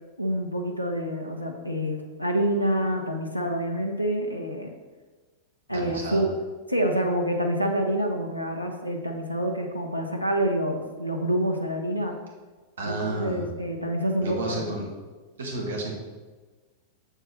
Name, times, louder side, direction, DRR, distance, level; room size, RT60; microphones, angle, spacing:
voice 1, 0.2-4.7 5.7-12.1 12.8-14.6, right 1 dB, 85° left, 3 dB, 0.9 m, -27 dB
voice 2, 5.7-6.2 12.8-13.4 14.2-14.9 15.4-15.9, right 2 dB, 65° right, 0 dB, 1.9 m, -31 dB
7.3 x 6.9 x 4.5 m, 1.3 s
figure-of-eight pair, 90°, 0 cm